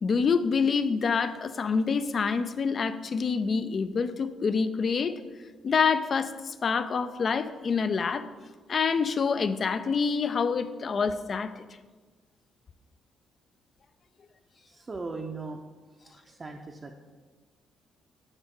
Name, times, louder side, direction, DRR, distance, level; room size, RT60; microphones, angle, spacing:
voice 1, 0.0-5.2 5.6-8.2 8.7-11.6, left 5 dB, 45° left, 12 dB, 0.4 m, -27 dB
voice 2, 14.7-15.6 16.0-17.0, right 3 dB, 30° right, 1 dB, 0.6 m, -39 dB
8.0 x 5.2 x 3.7 m, 1.4 s
cardioid pair, 90°, 0 cm